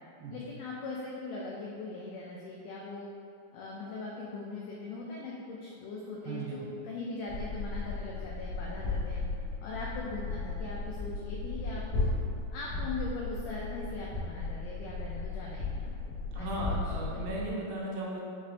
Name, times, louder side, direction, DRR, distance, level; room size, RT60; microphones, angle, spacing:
voice 1, 0.3-3.1 3.5-9.2 9.6-12.1 12.5-17.2, left 3 dB, 85° left, -4 dB, 1.8 m, -40 dB
voice 2, 6.2-6.7 16.3-18.2, right 2 dB, 80° right, -4 dB, 2.3 m, -36 dB
sound 1, 7.3-17.5, left 3 dB, 70° left, 1.2 m, -35 dB
6.2 x 3.4 x 2.5 m, 2.5 s
omnidirectional pair, 4.2 m